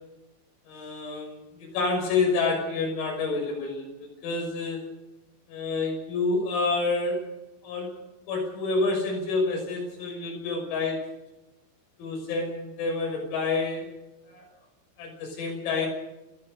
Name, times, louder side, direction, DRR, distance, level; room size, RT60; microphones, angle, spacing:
voice 1, 0.7-3.9 4.2-4.8 5.5-7.3 7.6-7.9 8.3-11.1 12.0-13.9 14.3-14.5 15.0-15.9, left 3 dB, 90° left, 0 dB, 8.9 m, -28 dB
29.5 x 14.5 x 6.8 m, 0.97 s
omnidirectional pair, 5.9 m